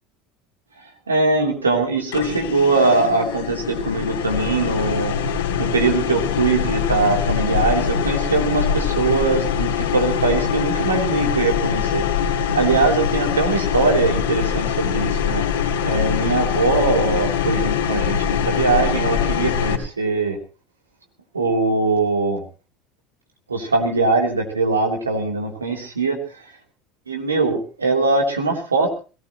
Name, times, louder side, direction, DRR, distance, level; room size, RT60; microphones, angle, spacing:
voice 1, 1.1-5.1 5.6-15.4 15.8-20.4 21.3-22.4 23.5-26.2 27.1-29.0, right 3 dB, 85° right, 1 dB, 3.4 m, -21 dB
sound 1, 2.1-19.7, left 7 dB, 70° left, 2.7 m, -23 dB
22.0 x 18.5 x 3.1 m, 0.35 s
figure-of-eight pair, 70°, 0 cm